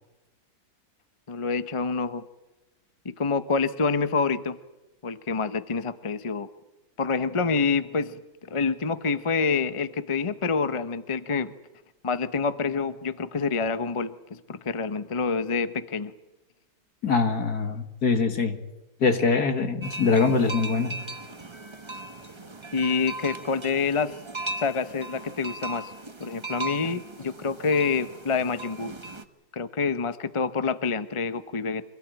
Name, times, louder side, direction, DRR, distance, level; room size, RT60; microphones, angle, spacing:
voice 1, 1.3-2.2 3.0-4.6 5.0-6.5 7.0-11.5 12.0-16.1 22.7-24.2 24.6-25.9 26.2-28.9 29.5-31.8, left 4 dB, 35° left, 12 dB, 0.5 m, -27 dB
voice 2, 17.0-18.6 19.0-20.9, left 4 dB, 55° left, 8 dB, 2.3 m, -23 dB
sound 1, 19.8-29.2, right 2 dB, 20° right, 1.1 m, -38 dB
25.0 x 17.0 x 9.0 m, 1.1 s
omnidirectional pair, 2.0 m